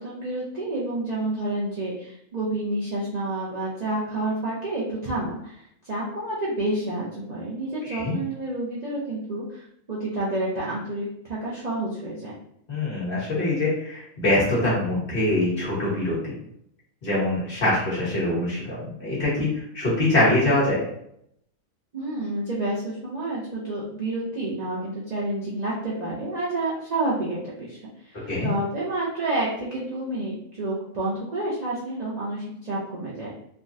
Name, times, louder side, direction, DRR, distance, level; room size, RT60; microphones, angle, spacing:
voice 1, 0.0-12.3 21.9-33.3, right 2 dB, 45° right, -7 dB, 0.5 m, -29 dB
voice 2, 12.7-16.3 17.0-19.5 19.7-20.8 28.2-28.5, left 1 dB, 40° left, -7 dB, 1.3 m, -24 dB
3.4 x 2.3 x 2.6 m, 0.72 s
omnidirectional pair, 1.5 m